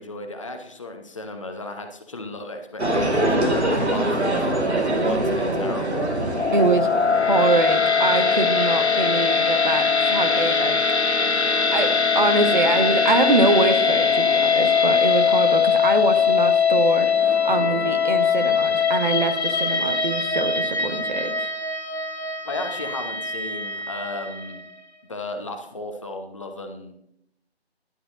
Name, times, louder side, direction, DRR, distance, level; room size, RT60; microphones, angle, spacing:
voice 1, 0.0-6.1 22.4-24.6 25.1-27.0, left 2 dB, 30° left, 5 dB, 0.9 m, -34 dB
sound 1, 2.8-7.8, right 1 dB, 80° right, 1.8 m, -24 dB
sound 2, 3.2-8.5, right 1 dB, 30° right, 4.4 m, -40 dB
sound 3, 6.3-24.6, left 6 dB, 80° left, 1.0 m, -21 dB
voice 2, 6.5-10.8 11.3-21.5, right 3 dB, 45° right, 7 dB, 1.1 m, -24 dB
11.0 x 11.0 x 2.5 m, 0.73 s
figure-of-eight pair, 150°, 33 cm